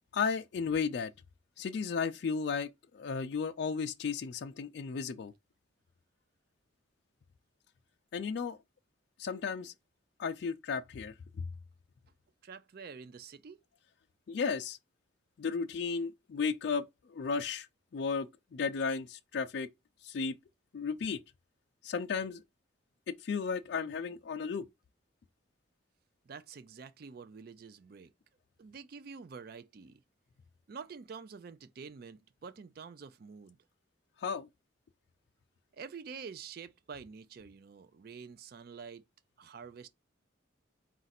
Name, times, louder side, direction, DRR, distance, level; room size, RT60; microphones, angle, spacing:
voice 1, 0.1-1.1 1.6-2.7 2.9-5.3 8.1-8.6 9.2-9.7 10.2-11.1 14.3-14.8 15.4-16.8 17.1-17.7 17.9-19.7 20.0-20.3 20.7-21.2 21.8-22.4 23.1-24.7 34.2-34.5, left 5 dB, 55° left, 0.3 m, -34 dB
voice 2, 12.4-13.6 26.3-28.1 28.6-30.0 30.7-33.6 35.7-39.0 39.4-39.9, right 5 dB, 45° right, 0.4 m, -47 dB
4.0 x 2.5 x 4.1 m
head